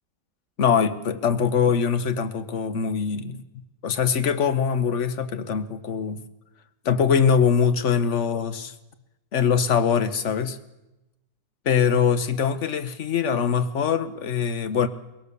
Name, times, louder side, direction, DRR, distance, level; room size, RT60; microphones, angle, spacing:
voice 1, 0.6-3.4 3.8-6.2 6.8-8.7 9.3-10.6 11.7-14.9, left 7 dB, 50° left, 12 dB, 1.3 m, -22 dB
23.0 x 17.5 x 6.9 m, 0.99 s
omnidirectional pair, 1.6 m